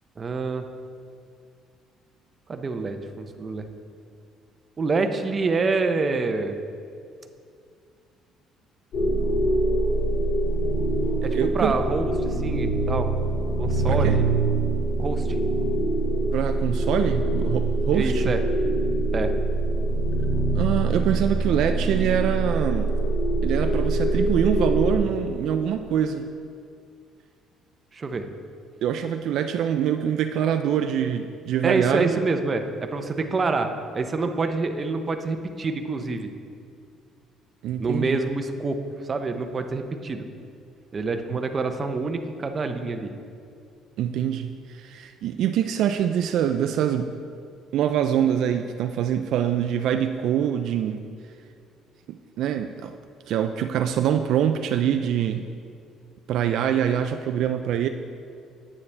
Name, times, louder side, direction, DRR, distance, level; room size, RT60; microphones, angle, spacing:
voice 1, 0.2-0.7 2.5-3.7 4.8-6.5 11.2-13.1 13.6-14.2 15.0-15.4 17.9-18.4 19.1-19.3 27.9-28.3 31.6-36.3 37.8-38.8 39.1-40.3 40.9-43.1, right 3 dB, 30° right, 6 dB, 0.6 m, -26 dB
sound 1, 8.9-25.0, right 2 dB, 55° left, 2.3 m, -24 dB
voice 2, 11.3-11.8 13.9-14.2 16.3-18.3 20.5-22.9 23.4-26.3 28.8-32.2 37.6-38.2 41.3-41.4 44.0-47.1 47.7-51.0 52.1-52.9 53.3-55.5 56.3-57.9, right 9 dB, 65° right, 7 dB, 0.3 m, -24 dB
9.5 x 8.4 x 3.3 m, 2.4 s
cardioid pair, 125°, 0 cm